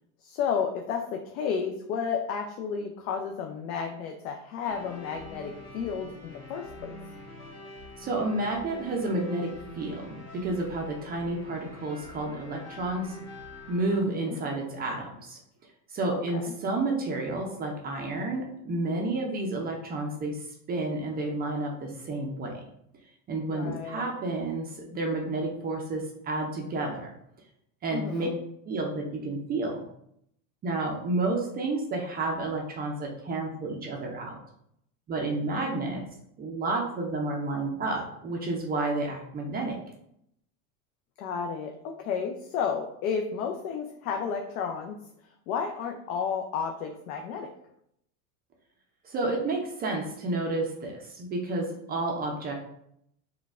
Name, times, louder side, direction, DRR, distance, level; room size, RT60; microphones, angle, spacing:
voice 1, 0.2-6.9 14.0-14.4 16.1-16.5 23.5-24.1 27.9-28.3 41.2-47.5, left 6 dB, 70° left, 3 dB, 0.5 m, -32 dB
sound 1, 4.7-14.0, left 1 dB, 35° left, 1.4 m, -45 dB
voice 2, 8.0-9.5 9.7-13.2 13.7-15.4 15.9-22.6 23.3-27.1 27.8-28.3 28.7-29.8 30.6-34.4 35.1-36.0 36.4-39.8 49.0-52.5, right 2 dB, 25° right, 0 dB, 0.4 m, -30 dB
3.9 x 2.2 x 2.3 m, 0.74 s
supercardioid pair, 110°, 45 cm